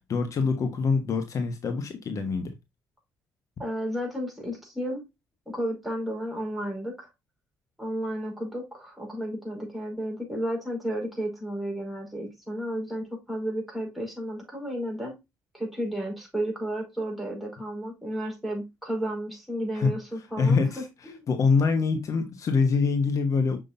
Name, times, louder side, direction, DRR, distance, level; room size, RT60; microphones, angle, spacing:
voice 1, 0.1-2.5 19.7-19.9 20.4-23.6, left 4 dB, 55° left, 1.2 m, -25 dB
voice 2, 3.6-5.0 5.5-7.1 7.8-15.1 15.5-21.3, equal, ahead, 4.9 m, -32 dB
6.8 x 6.2 x 2.6 m
supercardioid pair, 75°, 7 cm